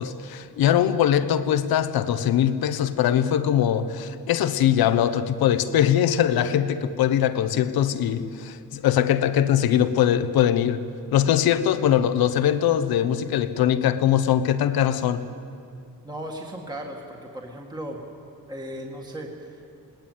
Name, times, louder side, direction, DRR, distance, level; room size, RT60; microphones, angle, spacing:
voice 1, 0.0-10.8 11.1-15.3, left 10 dB, 85° left, 1.1 m, -21 dB
voice 2, 16.0-18.0 18.5-19.7, right 1 dB, 10° right, 1.9 m, -36 dB
20.0 x 18.5 x 9.3 m
cardioid pair, 135°, 36 cm